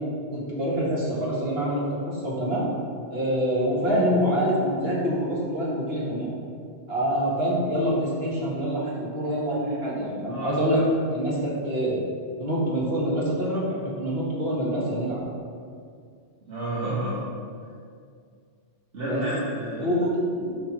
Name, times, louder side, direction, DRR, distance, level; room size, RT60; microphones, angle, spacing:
voice 1, 0.3-2.7 3.1-6.3 6.9-10.8 11.1-12.0 12.4-15.2 19.0-19.2 19.8-20.6, equal, 60° right, -6 dB, 2.1 m, -26 dB
voice 2, 10.3-10.8 16.5-17.2 18.9-19.9, right 1 dB, 85° right, -10 dB, 1.9 m, -30 dB
11.0 x 4.2 x 4.4 m, 2.2 s
omnidirectional pair, 1.2 m